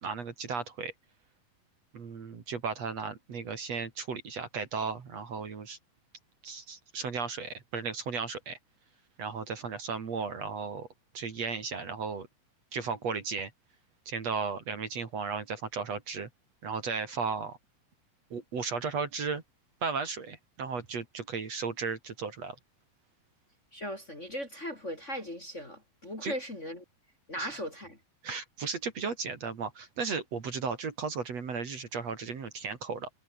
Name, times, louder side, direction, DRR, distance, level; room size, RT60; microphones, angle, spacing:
voice 1, 0.0-0.9 1.9-5.8 6.4-8.6 9.2-10.9 11.1-12.3 12.7-13.5 14.1-16.3 16.6-17.6 18.3-19.4 19.8-22.6 26.2-26.4 27.4-27.6 28.2-33.1, right 5 dB, 50° right, 3.6 m, -35 dB
voice 2, 23.7-26.8 27.3-28.0, equal, 20° left, 3.2 m, -38 dB
omnidirectional pair, 4.1 m